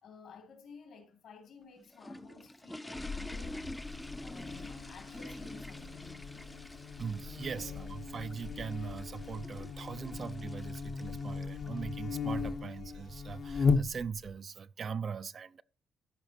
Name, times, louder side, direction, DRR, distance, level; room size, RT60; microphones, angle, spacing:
voice 1, 0.0-3.8 4.2-6.4 7.6-7.8, left 5 dB, 75° left, 2.8 m, -54 dB
sound 1, 1.6-11.9, left 1 dB, 10° left, 0.5 m, -48 dB
Buzz, 3.0-14.4, left 4 dB, 55° left, 0.9 m, -37 dB
sound 2, 4.4-13.5, right 1 dB, 90° right, 2.3 m, -62 dB
voice 2, 7.0-15.6, right 6 dB, 45° right, 0.4 m, -40 dB
13.5 x 5.1 x 2.8 m
cardioid pair, 100°, 0 cm